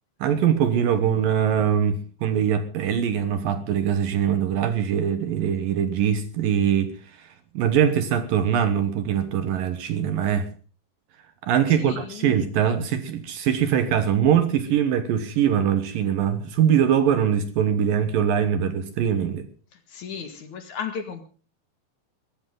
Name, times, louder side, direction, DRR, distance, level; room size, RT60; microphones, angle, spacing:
voice 1, 0.2-10.5 11.4-19.5, right 8 dB, 65° right, 2.4 m, -22 dB
voice 2, 11.7-12.3 19.7-21.2, left 7 dB, 55° left, 2.5 m, -35 dB
22.0 x 13.5 x 3.8 m
omnidirectional pair, 5.0 m